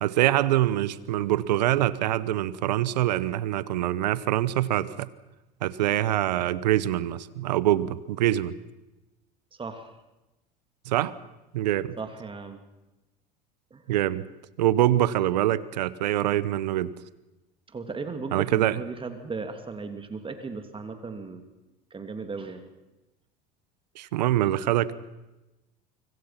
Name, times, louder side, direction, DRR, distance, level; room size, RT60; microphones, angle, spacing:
voice 1, 0.0-5.1 5.6-8.5 10.9-11.1 11.5-11.9 13.9-14.3 14.6-16.9 18.3-18.8 24.0-24.9, right 13 dB, 80° right, 18 dB, 1.1 m, -24 dB
voice 2, 9.6-9.9 12.0-12.6 13.7-13.8 17.7-21.4 21.9-22.6, right 4 dB, 25° right, 7 dB, 2.8 m, -36 dB
25.0 x 25.0 x 5.9 m, 1.0 s
hypercardioid pair, 80°, 21 cm